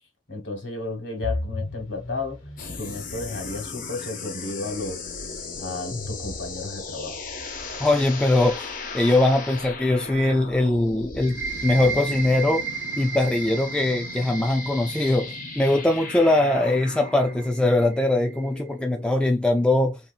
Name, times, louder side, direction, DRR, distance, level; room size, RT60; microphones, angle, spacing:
voice 1, 0.3-2.4 2.7-5.0 5.6-7.2, left 3 dB, 60° left, 1.3 m, -33 dB
sound 1, 1.2-7.2, left 2 dB, 85° left, 1.1 m, -37 dB
sound 2, 2.6-19.4, left 4 dB, 40° left, 0.6 m, -37 dB
voice 2, 7.8-8.7 8.9-12.7 13.0-20.0, left 2 dB, 5° left, 0.3 m, -21 dB
sound 3, 11.2-18.6, right 5 dB, 60° right, 0.8 m, -35 dB
3.0 x 2.7 x 2.4 m
head